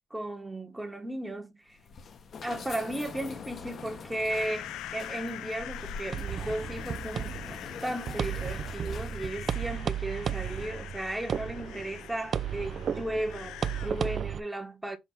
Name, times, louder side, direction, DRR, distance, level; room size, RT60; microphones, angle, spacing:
voice 1, 0.1-1.8 2.4-15.0, right 1 dB, 10° right, 1.2 m, -35 dB
sound 1, 1.7-9.5, left 5 dB, 55° left, 1.1 m, -44 dB
sound 2, 4.3-14.2, left 13 dB, 90° left, 0.4 m, -44 dB
sound 3, 6.1-14.4, right 8 dB, 55° right, 0.4 m, -34 dB
6.2 x 2.9 x 5.6 m
cardioid pair, 90°, 0 cm